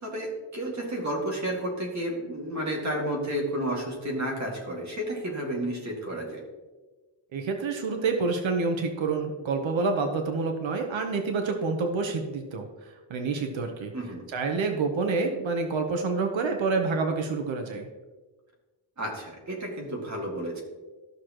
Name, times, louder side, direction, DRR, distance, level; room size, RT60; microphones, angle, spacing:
voice 1, 0.0-6.5 13.9-14.2 19.0-20.6, right 1 dB, 40° right, -2 dB, 2.2 m, -31 dB
voice 2, 7.3-12.7 13.1-13.9 14.3-17.9, right 4 dB, 80° right, 4 dB, 1.1 m, -28 dB
14.0 x 6.4 x 3.0 m, 1.3 s
wide cardioid pair, 170°, 45 cm